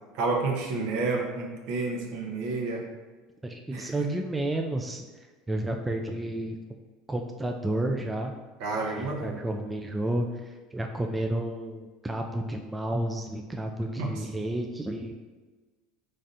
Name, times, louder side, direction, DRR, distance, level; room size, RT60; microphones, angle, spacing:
voice 1, 0.1-2.8 3.7-3.9 8.6-9.4 14.0-14.1, right 3 dB, 65° right, 1 dB, 0.8 m, -30 dB
voice 2, 3.4-5.0 5.5-6.6 7.1-8.3 9.0-15.1, right 1 dB, 10° right, 3 dB, 0.3 m, -31 dB
4.0 x 3.3 x 2.5 m, 1.3 s
supercardioid pair, 110°, 0 cm